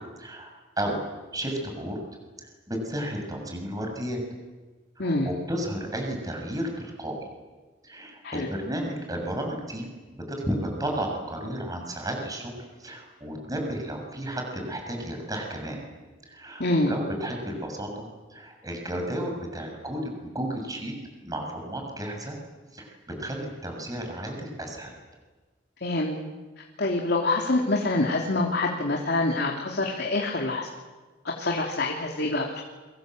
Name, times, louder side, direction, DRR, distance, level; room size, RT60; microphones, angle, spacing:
voice 1, 0.2-0.5 0.8-1.0 1.3-2.0 2.4-4.2 5.0-7.2 7.8-9.9 10.1-15.9 16.2-20.9 21.2-22.4 22.7-25.0, right 1 dB, 20° right, 2 dB, 7.0 m, -33 dB
voice 2, 16.6-17.0 25.8-26.2 26.8-30.7 31.4-32.6, left 2 dB, 60° left, 0 dB, 3.1 m, -26 dB
29.0 x 25.0 x 8.0 m, 1.3 s
head